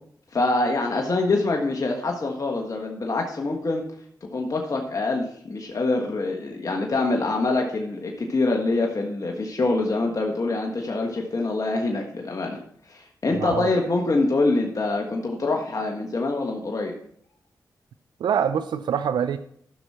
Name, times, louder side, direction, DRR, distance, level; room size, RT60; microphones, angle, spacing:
voice 1, 0.3-3.8 4.3-12.6 12.9-16.9, left 2 dB, 50° left, 1.5 m, -25 dB
voice 2, 13.3-13.7 18.2-19.4, right 8 dB, 85° right, 0.5 m, -25 dB
12.0 x 6.4 x 4.3 m
cardioid pair, 45°, 7 cm